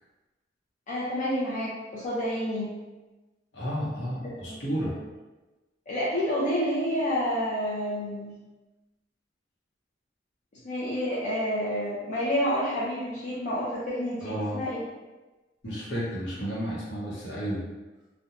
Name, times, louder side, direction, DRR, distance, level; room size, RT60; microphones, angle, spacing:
voice 1, 0.9-2.7 4.2-5.0 5.9-8.4 10.6-14.8, equal, 45° left, -8 dB, 0.4 m, -29 dB
voice 2, 3.5-4.9 14.2-14.6 15.6-17.6, equal, 70° left, -6 dB, 0.8 m, -32 dB
2.8 x 2.1 x 2.4 m, 1.1 s
head